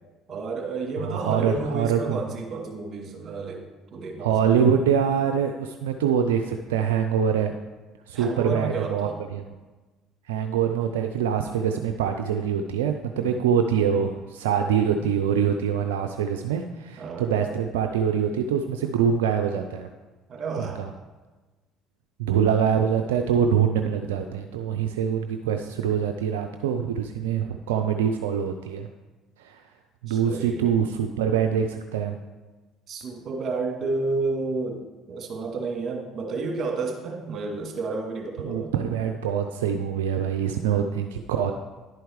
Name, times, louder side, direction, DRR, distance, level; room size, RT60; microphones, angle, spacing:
voice 1, 0.3-3.6 3.9-4.5 8.1-9.2 13.2-13.4 17.0-17.3 20.3-20.8 30.1-30.7 32.9-38.7, right 3 dB, 45° right, 0 dB, 2.3 m, -31 dB
voice 2, 1.0-2.2 4.2-7.5 8.1-9.6 10.3-19.9 20.6-20.9 22.2-28.9 29.4-29.6 30.0-32.2 38.4-41.5, right 8 dB, 85° right, 5 dB, 0.4 m, -24 dB
11.0 x 4.6 x 4.7 m, 1.2 s
hypercardioid pair, 65°, 0 cm